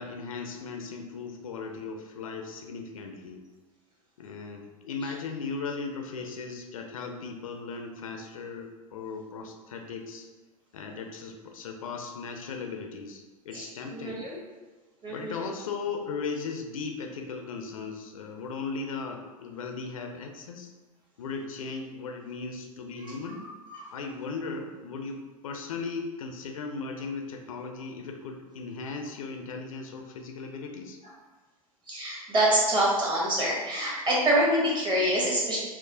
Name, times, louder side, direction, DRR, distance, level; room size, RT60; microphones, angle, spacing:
voice 1, 0.0-3.4 4.2-10.3 10.7-14.2 15.1-20.7 21.2-23.4 23.9-31.0, left 4 dB, 65° left, 3 dB, 0.4 m, -37 dB
voice 2, 13.5-14.4 15.0-15.4 23.7-23.9 31.9-35.6, right 1 dB, 25° right, -4 dB, 1.1 m, -26 dB
4.7 x 2.0 x 2.6 m, 1.3 s
figure-of-eight pair, 85°, 19 cm